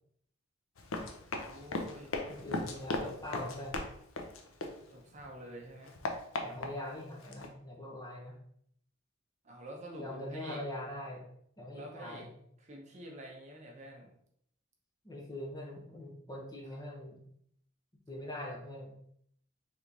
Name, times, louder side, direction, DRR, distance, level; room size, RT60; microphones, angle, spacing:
Run, 0.8-5.2 5.6-7.5, left 2 dB, 85° left, 0.6 m, -38 dB
voice 1, 1.3-2.1 4.9-6.0 9.4-10.6 11.7-12.2 12.6-14.2, right 1 dB, 35° right, 0 dB, 0.7 m, -48 dB
voice 2, 2.3-3.8 6.4-8.4 10.0-11.3 11.6-12.4 15.0-17.2 18.1-19.0, left 1 dB, 20° left, -2 dB, 0.8 m, -42 dB
3.5 x 3.1 x 3.9 m, 0.68 s
head